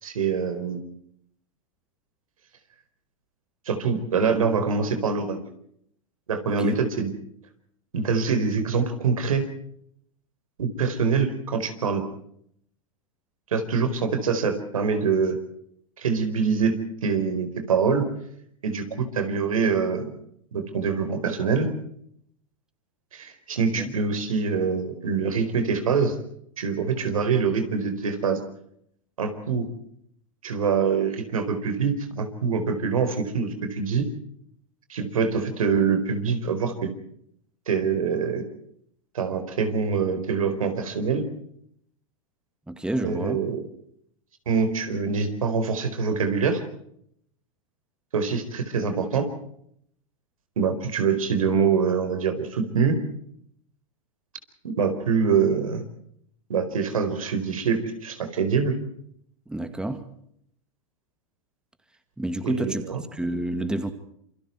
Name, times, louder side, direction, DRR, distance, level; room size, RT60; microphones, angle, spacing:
voice 1, 0.0-0.8 3.7-5.4 6.3-7.1 7.9-9.4 10.6-12.0 13.5-15.4 16.0-16.7 17.0-18.0 18.6-20.1 20.5-21.7 23.1-26.2 26.6-28.4 29.2-29.7 30.4-34.1 34.9-36.9 37.7-38.4 39.1-41.3 43.0-43.6 44.5-46.6 48.1-49.3 50.6-53.0 54.6-55.8 56.5-58.8 62.4-63.0, right 5 dB, 85° right, 8 dB, 4.5 m, -24 dB
voice 2, 42.7-43.4 59.5-60.0 62.2-63.9, right 1 dB, 5° right, 9 dB, 2.2 m, -29 dB
28.0 x 24.5 x 4.6 m, 0.69 s
hypercardioid pair, 115°, 17 cm